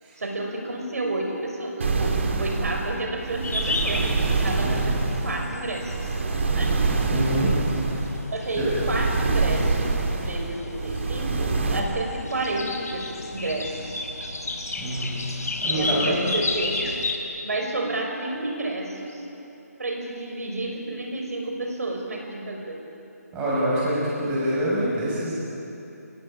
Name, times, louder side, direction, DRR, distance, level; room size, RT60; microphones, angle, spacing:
voice 1, 0.2-6.1 6.4-6.9 8.3-14.0 15.7-16.9 17.4-19.3 19.8-22.8, right 2 dB, 65° right, 2 dB, 5.9 m, -31 dB
sound 1, 1.8-11.8, right 3 dB, 45° right, 3.2 m, -26 dB
sound 2, 3.4-17.2, left 2 dB, 70° left, 4.2 m, -33 dB
voice 2, 4.4-4.9 7.1-7.6 8.5-8.7 14.8-15.1 15.6-16.2 23.3-25.3, right 1 dB, 10° right, -7 dB, 6.4 m, -26 dB
28.0 x 21.0 x 9.1 m, 2.9 s
hypercardioid pair, 165°, 9 cm